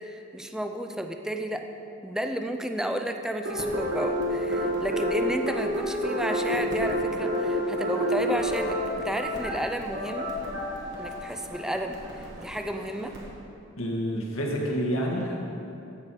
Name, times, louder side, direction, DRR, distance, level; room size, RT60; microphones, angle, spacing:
voice 1, 0.0-1.7 2.0-8.8 9.0-10.3 11.0-13.1, right 1 dB, 5° right, 5 dB, 0.5 m, -32 dB
sound 1, 3.4-13.3, equal, 60° right, 1.8 m, -29 dB
voice 2, 13.8-15.4, equal, 80° left, -1 dB, 1.8 m, -28 dB
15.0 x 5.9 x 4.8 m, 2.6 s
head